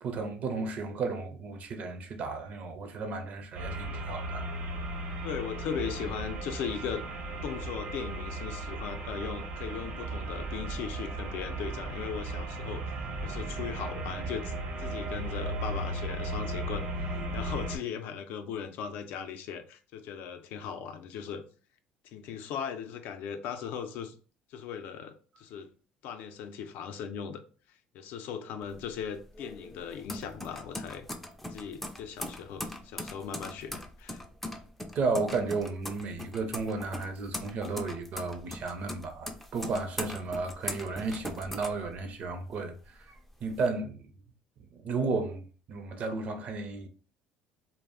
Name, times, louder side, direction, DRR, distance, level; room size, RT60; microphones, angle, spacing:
voice 1, 0.0-4.6 34.9-42.7 43.1-44.1 44.7-46.9, right 4 dB, 50° right, 0.5 m, -33 dB
sound 1, 3.5-17.8, right 2 dB, 70° right, 0.9 m, -36 dB
voice 2, 5.2-7.0 7.4-12.9 13.2-21.4 22.0-24.2 24.5-25.7 26.0-27.4 27.9-31.0 31.5-34.2, left 7 dB, 70° left, 0.4 m, -38 dB
sound 2, 28.6-42.4 42.8-43.7, left 1 dB, 5° left, 0.3 m, -41 dB
2.3 x 2.0 x 3.5 m
cardioid pair, 110°, 3 cm